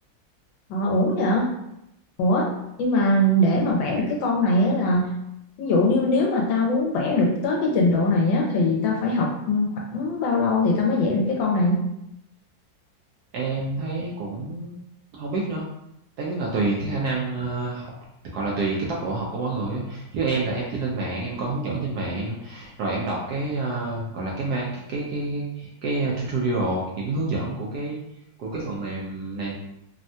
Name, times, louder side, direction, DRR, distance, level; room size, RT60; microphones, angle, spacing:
voice 1, 0.7-1.5 2.2-2.5 2.8-5.1 5.6-11.8, left 1 dB, 80° left, -1 dB, 1.4 m, -21 dB
voice 2, 13.3-14.8 15.1-15.6 16.2-17.9 18.3-28.0 28.4-29.5, right 3 dB, 70° right, -3 dB, 0.9 m, -28 dB
3.4 x 2.1 x 2.6 m, 0.82 s
omnidirectional pair, 2.0 m